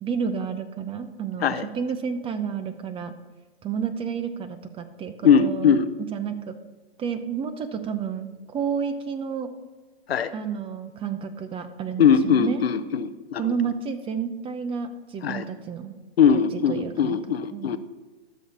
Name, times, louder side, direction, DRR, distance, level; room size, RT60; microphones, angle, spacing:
voice 1, 0.0-3.1 3.6-5.1 5.4-5.8 6.1-6.5 7.0-9.5 10.3-12.8 13.4-16.0 16.7-17.2 17.5-17.8, right 6 dB, 15° right, 10 dB, 0.8 m, -30 dB
voice 2, 5.2-5.9 10.1-10.3 12.0-13.4 15.2-15.4 16.2-17.8, left 7 dB, 80° left, 12 dB, 0.8 m, -20 dB
12.5 x 6.5 x 5.4 m, 1.3 s
hypercardioid pair, 125°, 30 cm